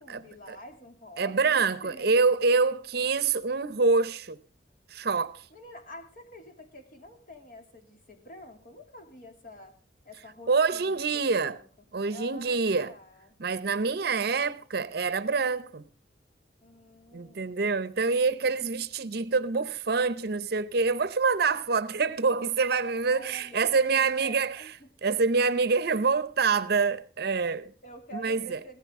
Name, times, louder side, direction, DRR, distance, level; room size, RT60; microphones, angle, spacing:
voice 1, 0.0-2.2 5.5-9.8 10.0-13.3 16.6-17.5 23.0-24.9 27.8-28.8, equal, 50° left, 2.8 m, -48 dB
voice 2, 1.2-4.4 4.9-5.5 10.5-11.5 11.9-12.9 13.4-15.9 17.1-24.6 25.0-27.7 28.1-28.6, right 4 dB, 65° right, 0.7 m, -26 dB
16.0 x 14.5 x 3.6 m
head